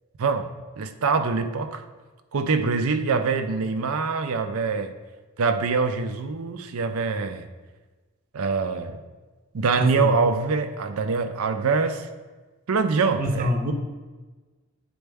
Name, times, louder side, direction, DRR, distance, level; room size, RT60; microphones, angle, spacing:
voice 1, 0.2-0.5 0.8-1.8 2.3-4.9 5.4-7.4 8.3-9.0 9.5-12.1 12.7-13.5, right 4 dB, 75° right, 9 dB, 0.5 m, -24 dB
voice 2, 9.8-10.1 13.2-13.7, equal, 40° right, 4 dB, 0.7 m, -25 dB
9.1 x 4.3 x 3.5 m, 1.3 s
head